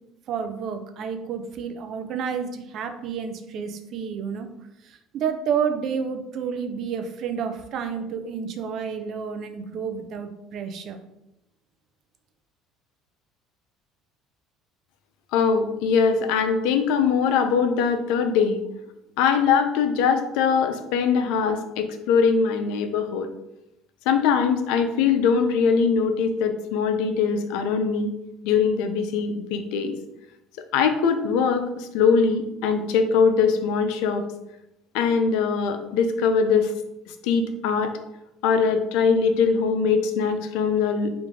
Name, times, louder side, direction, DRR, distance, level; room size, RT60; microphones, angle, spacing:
voice 1, 0.3-4.5 4.8-11.0, right 6 dB, 55° right, 7 dB, 0.4 m, -30 dB
voice 2, 15.3-18.6 19.2-23.3 24.1-28.1 28.4-29.9 30.7-34.3 34.9-36.7 37.2-37.9 38.4-41.1, left 6 dB, 75° left, 7 dB, 0.4 m, -22 dB
3.5 x 2.5 x 3.1 m, 0.88 s
supercardioid pair, 80°, 0 cm